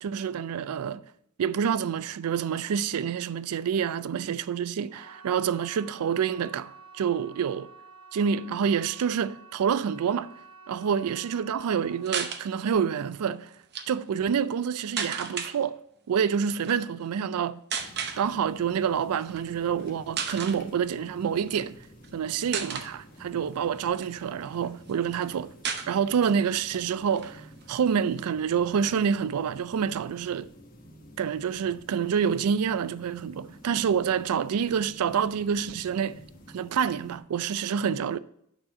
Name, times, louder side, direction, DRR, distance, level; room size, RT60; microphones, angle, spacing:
voice 1, 0.0-1.0 1.4-7.7 8.1-10.3 10.7-13.5 13.9-15.8 16.1-17.6 18.2-21.8 22.1-25.5 25.9-30.5 31.2-36.2 36.5-38.2, right 7 dB, 90° right, 0.4 m, -27 dB
sound 1, 4.8-15.7 16.0-16.6 16.9-17.0, right 4 dB, 25° right, 2.6 m, -51 dB
sound 2, 12.0-12.4 13.5-13.9 15.0-15.5 16.6-16.8 17.7-18.2 19.2-19.4 19.8-19.9 20.1-20.6 21.5-22.1 22.5-22.9 23.5-24.6 24.9-25.0 25.2-25.3 25.6-26.4 26.7-26.8 27.1-28.2, right 7 dB, 50° right, 0.8 m, -33 dB
sound 3, 17.7-37.2, equal, 40° left, 1.2 m, -50 dB
8.9 x 4.3 x 4.8 m
head